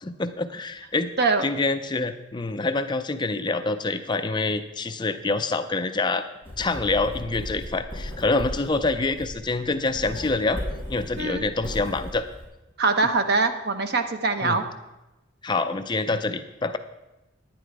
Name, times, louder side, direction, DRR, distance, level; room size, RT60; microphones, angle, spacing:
voice 1, 0.0-1.1 1.4-6.3 6.6-10.6 10.9-12.2 14.4-14.6 15.4-16.8, left 3 dB, 25° left, 9 dB, 0.5 m, -26 dB
Writing, 6.4-12.4, equal, 30° right, 4.7 m, -36 dB
voice 2, 12.8-14.6, right 3 dB, 55° right, 8 dB, 0.9 m, -23 dB
10.5 x 10.0 x 4.7 m, 1.0 s
head